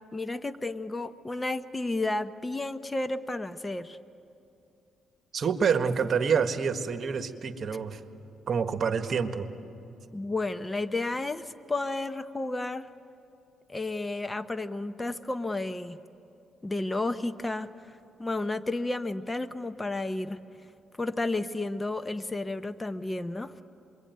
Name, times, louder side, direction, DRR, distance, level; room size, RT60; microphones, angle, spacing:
voice 1, 0.1-4.0 10.1-12.9 13.7-16.0 16.6-17.7 18.2-20.4 21.0-23.5, left 2 dB, 20° left, 12 dB, 0.8 m, -32 dB
voice 2, 5.3-8.0 8.5-9.5, right 6 dB, 50° right, 9 dB, 1.5 m, -27 dB
27.5 x 22.5 x 9.3 m, 2.8 s
cardioid pair, 90°, 0 cm